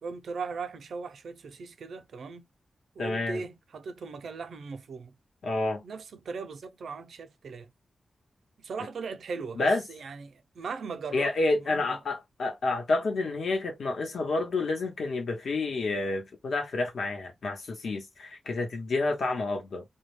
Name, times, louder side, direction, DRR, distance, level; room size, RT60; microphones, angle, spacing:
voice 1, 0.0-2.5 3.0-5.2 5.8-7.7 8.6-12.0, right 4 dB, 85° right, 0.5 m, -39 dB
voice 2, 3.0-3.4 5.4-5.8 9.6-9.8 11.1-19.8, left 3 dB, 75° left, 1.0 m, -29 dB
2.3 x 2.2 x 3.1 m
wide cardioid pair, 175°, 0 cm